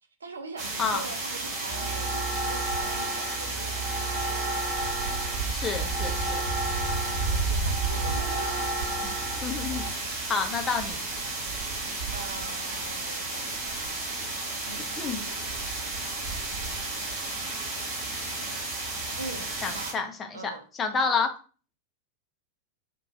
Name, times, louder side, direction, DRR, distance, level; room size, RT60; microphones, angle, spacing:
voice 1, 0.2-4.8 7.0-8.7 12.1-14.1 14.7-14.8 19.2-20.0 20.3-20.6, right 3 dB, 70° right, 0.4 m, -42 dB
sound 1, 0.6-19.9, right 3 dB, 50° right, 1.0 m, -32 dB
sound 2, 1.7-9.9, right 2 dB, ahead, 1.1 m, -33 dB
voice 2, 5.5-6.4 9.4-9.9 10.3-11.0 15.0-15.3 19.6-20.4 20.8-21.3, left 5 dB, 20° left, 0.5 m, -29 dB
2.6 x 2.2 x 2.8 m
figure-of-eight pair, 90°, 0 cm